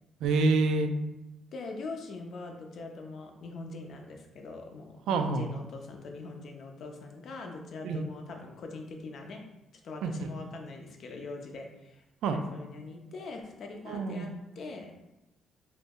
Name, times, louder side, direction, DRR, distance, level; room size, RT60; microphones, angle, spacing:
voice 1, 0.2-0.9 5.1-5.5 7.8-8.0 10.0-10.3 12.2-12.4 13.9-14.3, right 3 dB, 85° right, 6 dB, 0.3 m, -27 dB
voice 2, 1.5-9.4 9.8-12.0 12.3-14.3 14.6-14.9, left 3 dB, 60° left, 2 dB, 0.5 m, -42 dB
2.6 x 2.0 x 3.5 m, 0.95 s
cardioid pair, 90°, 0 cm